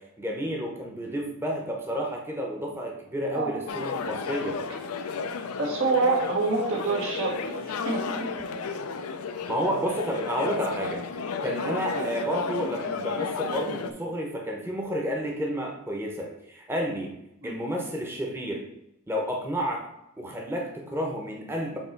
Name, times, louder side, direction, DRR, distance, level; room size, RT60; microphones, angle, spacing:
voice 1, 0.0-4.6 9.5-11.0 11.4-17.1 17.4-18.7 19.1-19.8 20.2-21.8, equal, 10° right, 0 dB, 0.8 m, -31 dB
sound 1, 3.7-13.9, left 5 dB, 90° left, 0.5 m, -33 dB
voice 2, 5.6-8.5 11.9-12.1 17.4-17.5, right 3 dB, 70° right, -1 dB, 1.4 m, -27 dB
7.3 x 3.0 x 4.5 m, 0.84 s
head